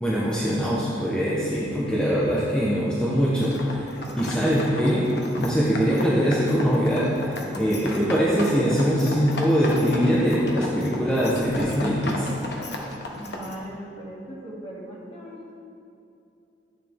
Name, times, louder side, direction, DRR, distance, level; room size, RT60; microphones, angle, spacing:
voice 1, 0.0-5.0 5.4-12.3, equal, 5° left, -7 dB, 1.1 m, -22 dB
sound 1, 3.4-13.5, left 1 dB, 65° left, 1.3 m, -35 dB
voice 2, 13.2-15.5, right 1 dB, 30° left, -5 dB, 2.4 m, -39 dB
13.5 x 8.7 x 3.6 m, 2.7 s
head